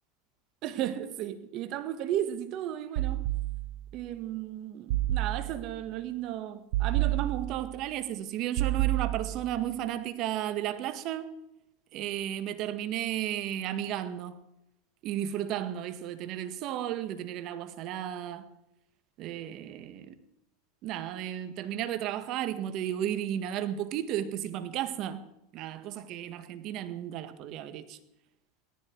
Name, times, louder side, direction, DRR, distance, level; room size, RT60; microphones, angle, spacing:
voice 1, 0.6-3.3 3.9-11.3 11.9-14.4 15.0-18.5 19.2-20.1 20.8-25.2 25.5-28.0, right 11 dB, 50° right, 1.7 m, -34 dB
sound 1, 3.0-4.0 4.9-5.8 6.7-7.8 8.6-9.6, right 16 dB, 70° right, 0.7 m, -30 dB
17.5 x 14.0 x 4.7 m
supercardioid pair, 110°, 0 cm